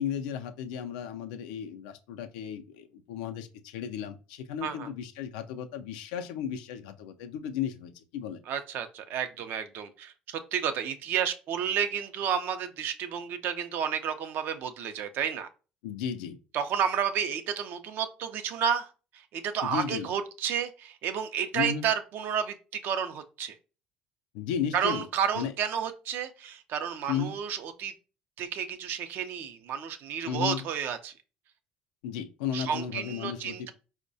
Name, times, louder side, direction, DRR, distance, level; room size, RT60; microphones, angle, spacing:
voice 1, 0.0-8.4 15.8-16.4 19.6-20.1 21.5-21.9 24.3-25.1 25.3-25.5 27.1-27.3 30.3-30.6 32.0-33.7, left 8 dB, 85° left, 0.4 m, -34 dB
voice 2, 8.5-15.5 16.5-23.6 24.7-27.9 28.4-31.1 32.5-33.7, right 8 dB, 65° right, 0.4 m, -31 dB
4.5 x 2.1 x 2.6 m
supercardioid pair, 75°, 4 cm